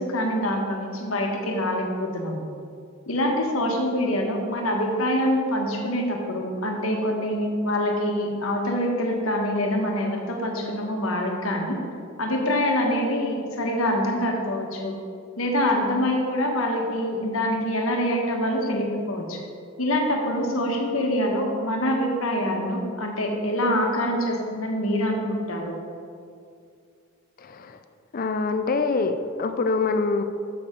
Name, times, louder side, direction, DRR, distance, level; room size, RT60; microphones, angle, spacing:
voice 1, 0.0-2.4 3.1-11.8 12.2-14.9 15.4-19.4 19.8-25.8, left 1 dB, 75° left, 1 dB, 1.3 m, -25 dB
voice 2, 27.4-27.8 28.1-30.2, left 4 dB, 40° left, 9 dB, 0.4 m, -25 dB
7.0 x 6.5 x 5.1 m, 2.3 s
head